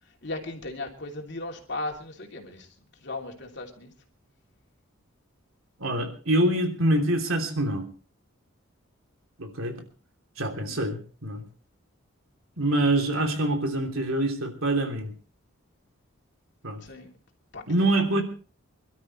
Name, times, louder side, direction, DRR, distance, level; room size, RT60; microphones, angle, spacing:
voice 1, 0.0-3.9 10.6-10.8 16.8-17.1 17.5-18.2, left 2 dB, 55° left, 2 dB, 3.0 m, -37 dB
voice 2, 5.8-7.8 9.4-9.7 10.4-11.4 12.6-15.1 16.6-16.8 17.7-18.2, right 1 dB, 85° right, 4 dB, 3.1 m, -25 dB
26.5 x 12.5 x 3.2 m, 0.39 s
head